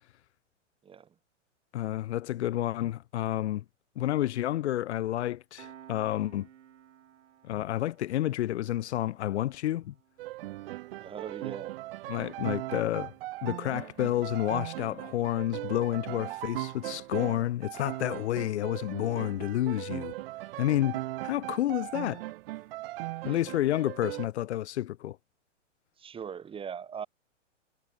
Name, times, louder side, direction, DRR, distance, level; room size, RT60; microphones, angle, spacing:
voice 1, 1.7-3.6 4.0-6.5 7.4-9.9 12.1-13.1 13.4-20.1 20.6-22.2 23.2-25.2, left 13 dB, 65° left, 0.7 m, -30 dB
Piano, 5.6-16.7, right 10 dB, 70° right, 3.5 m, -59 dB
sound 1, 10.2-24.3, right 17 dB, 50° right, 1.1 m, -39 dB
voice 2, 11.0-11.8 23.3-23.4 26.0-27.1, right 7 dB, 15° right, 1.4 m, -40 dB
hypercardioid pair, 125°, 37 cm